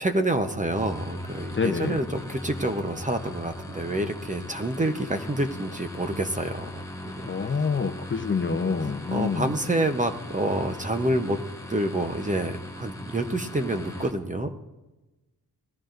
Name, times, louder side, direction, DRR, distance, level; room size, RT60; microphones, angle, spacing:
voice 1, 0.0-7.6 9.1-11.4 11.7-14.7, right 1 dB, 20° right, 7 dB, 0.7 m, -28 dB
sound 1, 0.7-14.1, left 1 dB, 10° left, 1.1 m, -39 dB
voice 2, 1.5-2.0 7.3-9.5, left 5 dB, 30° left, 8 dB, 0.6 m, -27 dB
19.0 x 13.5 x 2.5 m, 1.1 s
wide cardioid pair, 150°, 39 cm